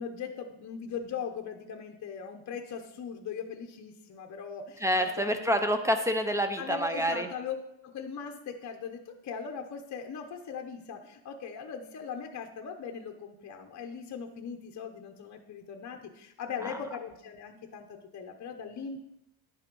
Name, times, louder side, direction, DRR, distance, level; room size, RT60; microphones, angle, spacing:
voice 1, 0.0-5.5 6.6-7.5 7.8-19.0, left 6 dB, 35° left, 4 dB, 0.8 m, -40 dB
voice 2, 4.8-7.3 16.6-16.8, equal, 5° right, 7 dB, 0.5 m, -27 dB
10.5 x 5.9 x 5.3 m, 0.83 s
cardioid pair, 165°, 49 cm